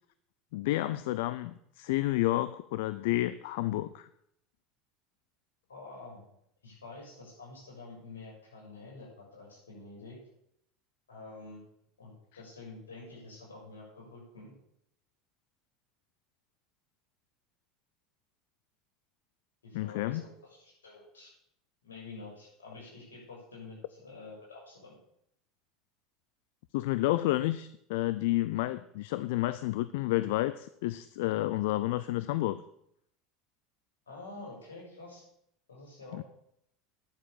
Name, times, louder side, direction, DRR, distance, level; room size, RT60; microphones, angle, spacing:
voice 1, 0.5-4.1 19.7-20.2 26.7-32.6 36.2-36.3, left 16 dB, 70° left, 15 dB, 0.5 m, -30 dB
voice 2, 5.7-6.2 6.6-10.2 11.1-11.6 12.0-14.5 19.6-21.3 21.8-25.0 34.1-35.2 35.7-36.2, left 3 dB, 90° left, -3 dB, 6.9 m, -48 dB
10.5 x 7.8 x 8.9 m, 0.74 s
hypercardioid pair, 80°, 0 cm